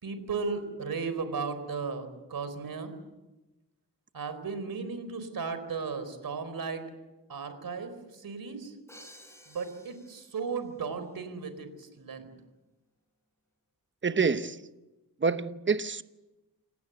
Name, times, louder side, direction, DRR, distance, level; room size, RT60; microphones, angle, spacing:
voice 1, 0.0-2.9 4.1-6.9 7.3-8.7 9.5-12.3, right 5 dB, 70° right, 4.3 m, -35 dB
Crash cymbal, 8.9-10.7, equal, 5° left, 5.8 m, -53 dB
voice 2, 14.0-14.6 15.2-16.0, right 5 dB, 30° right, 1.0 m, -27 dB
28.5 x 18.0 x 8.1 m
wide cardioid pair, 115°, 37 cm